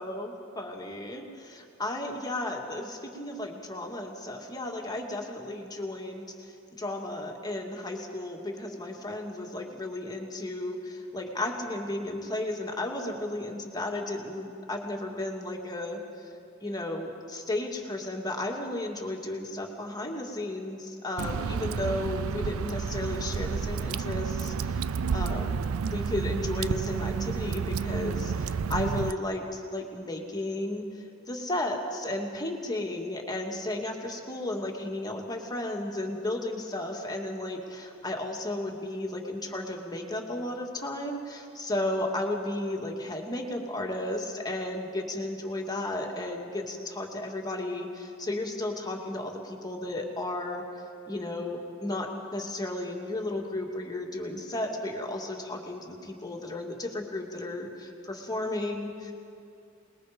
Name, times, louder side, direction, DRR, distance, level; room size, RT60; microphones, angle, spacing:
voice 1, 0.0-16.0 16.6-30.9 31.3-50.6 51.1-59.1, left 1 dB, 20° left, 1 dB, 2.1 m, -34 dB
Water / Drip, 21.2-29.1, right 6 dB, 80° right, 0.4 m, -30 dB
27.0 x 20.5 x 5.1 m, 2.5 s
head